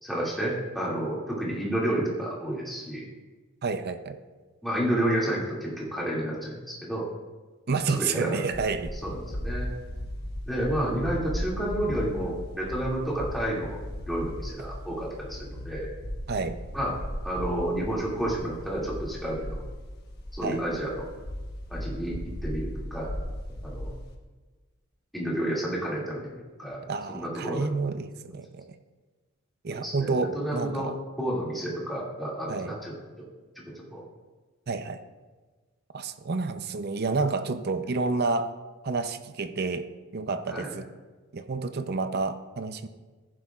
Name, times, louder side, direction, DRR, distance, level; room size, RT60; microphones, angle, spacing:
voice 1, 0.0-3.0 4.6-7.1 7.9-8.4 9.0-9.7 10.5-13.8 14.1-15.9 16.7-16.9 17.2-19.6 20.3-21.0 21.7-22.2 22.4-23.1 23.6-23.9 25.1-26.8 27.1-27.7 29.7-30.9 31.2-33.3 33.7-34.0 40.5-40.7, right 1 dB, ahead, -6 dB, 2.3 m, -30 dB
voice 2, 3.6-4.2 7.7-8.9 16.3-16.6 20.4-20.6 26.9-28.7 29.6-31.0 32.5-32.7 34.7-35.0 35.9-38.5 38.8-39.9 40.1-40.8 41.3-42.9, right 4 dB, 50° right, 10 dB, 0.6 m, -29 dB
sound 1, 8.5-24.1, equal, 50° left, 1.2 m, -37 dB
14.5 x 11.0 x 2.4 m, 1.3 s
head